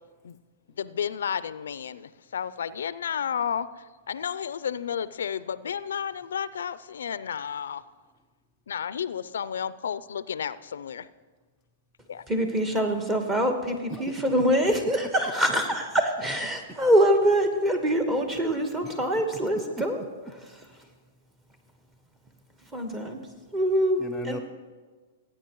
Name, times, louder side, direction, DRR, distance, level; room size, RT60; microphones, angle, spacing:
voice 1, 0.8-3.7 4.1-7.8 8.7-11.1 12.1-12.2, left 8 dB, 85° left, 16 dB, 0.4 m, -32 dB
voice 2, 12.3-20.0 22.6-23.2 23.5-24.4, equal, 15° right, 5 dB, 1.3 m, -24 dB
voice 3, 13.9-14.2 19.1-19.2 19.5-19.9 20.7-20.8 24.0-24.4, right 1 dB, ahead, 0 dB, 0.6 m, -37 dB
18.0 x 8.8 x 3.1 m, 1.4 s
hypercardioid pair, 145°, 0 cm